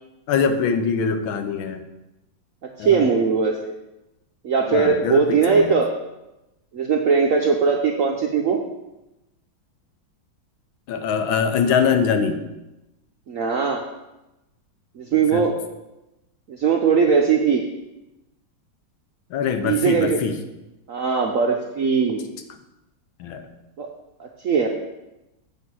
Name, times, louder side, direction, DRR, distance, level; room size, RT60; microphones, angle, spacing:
voice 1, 0.3-1.8 2.8-3.1 4.7-5.8 10.9-12.4 15.1-15.5 19.3-20.4 23.2-23.5, left 6 dB, 80° left, 8 dB, 1.6 m, -23 dB
voice 2, 2.8-3.7 4.4-5.9 6.7-8.6 13.3-13.8 15.0-15.6 16.5-17.6 19.6-20.2 20.9-22.3 23.8-23.9 24.2-24.7, right 5 dB, 65° right, 1 dB, 0.8 m, -20 dB
8.4 x 5.1 x 6.1 m, 0.97 s
omnidirectional pair, 2.2 m